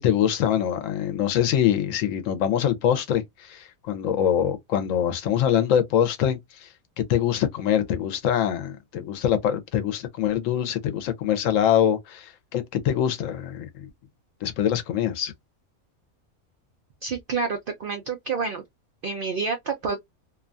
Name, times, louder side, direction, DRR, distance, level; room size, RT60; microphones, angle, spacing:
voice 1, 0.0-6.7 7.0-13.9 14.4-15.3, left 9 dB, 70° left, 0.9 m, -24 dB
voice 2, 17.0-18.6 19.0-20.0, right 5 dB, 80° right, 0.4 m, -28 dB
2.7 x 2.2 x 2.4 m
omnidirectional pair, 1.5 m